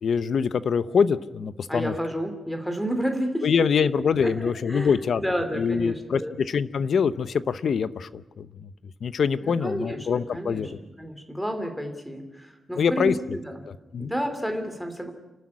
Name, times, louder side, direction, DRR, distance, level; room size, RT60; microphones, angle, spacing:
voice 1, 0.0-1.9 3.4-5.2 5.5-8.7 9.0-10.8 12.8-13.4 13.9-14.1, left 6 dB, 60° left, 15 dB, 0.8 m, -24 dB
voice 2, 1.7-3.5 4.2-6.3 9.4-10.7 11.0-13.6 14.0-15.1, equal, ahead, 6 dB, 2.7 m, -30 dB
29.0 x 12.5 x 9.6 m, 1.1 s
wide cardioid pair, 175°, 0 cm